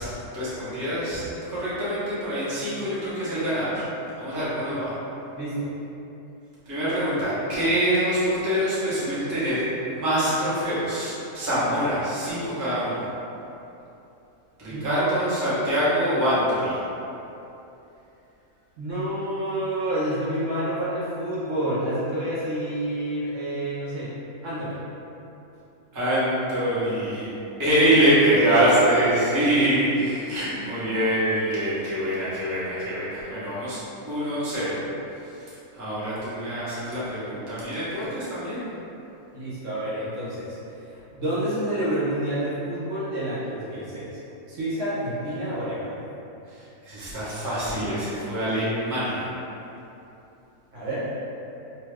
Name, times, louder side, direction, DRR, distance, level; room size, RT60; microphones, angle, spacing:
voice 1, 0.0-3.8 4.2-4.9 6.7-13.1 14.6-16.8 25.9-27.3 27.6-33.8 34.1-34.8 35.2-35.4 35.7-38.6 46.5-49.3, right 1 dB, 20° right, -11 dB, 0.5 m, -25 dB
voice 2, 5.3-5.7 14.7-15.0 18.8-24.1 24.4-24.8 28.3-29.5 39.3-40.6 41.1-44.1 44.5-46.0 50.7-51.0, right 1 dB, 60° right, -9 dB, 1.0 m, -28 dB
2.7 x 2.3 x 3.2 m, 2.9 s
omnidirectional pair, 1.6 m